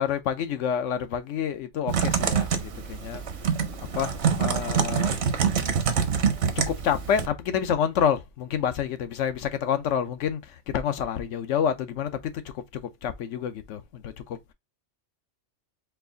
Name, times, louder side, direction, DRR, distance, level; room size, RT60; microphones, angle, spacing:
voice 1, 0.0-3.2 3.9-5.1 6.6-14.4, left 8 dB, 90° left, 1.0 m, -28 dB
Typing, 1.9-7.3, right 6 dB, 70° right, 1.0 m, -25 dB
4.6 x 2.4 x 3.8 m
omnidirectional pair, 1.2 m